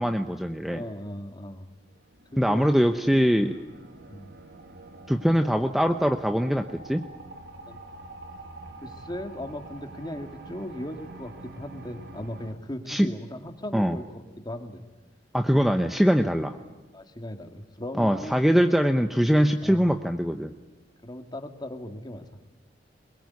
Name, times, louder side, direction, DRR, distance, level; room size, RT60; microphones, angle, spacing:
voice 1, 0.0-0.8 2.4-3.5 5.1-7.0 12.9-13.1 13.7-14.0 15.3-16.6 18.0-20.5, equal, ahead, 6 dB, 0.8 m, -22 dB
voice 2, 0.7-1.7 2.3-3.0 4.1-4.4 7.7-7.8 8.8-14.8 16.9-18.4 18.8-18.9 19.6-19.9 21.0-22.2, left 1 dB, 25° left, 6 dB, 2.0 m, -38 dB
sound 1, 1.9-12.5, right 2 dB, 65° right, 2.4 m, -46 dB
22.0 x 21.5 x 9.6 m, 1.2 s
head